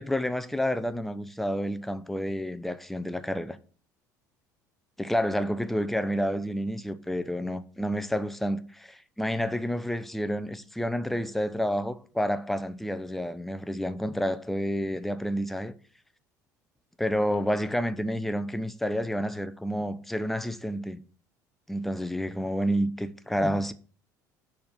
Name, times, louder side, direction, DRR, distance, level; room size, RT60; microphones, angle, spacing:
voice 1, 0.0-3.6 5.0-15.7 17.0-21.0 21.7-23.7, equal, ahead, 0.7 m, -29 dB
6.9 x 5.2 x 5.9 m
figure-of-eight pair, 65°, 10 cm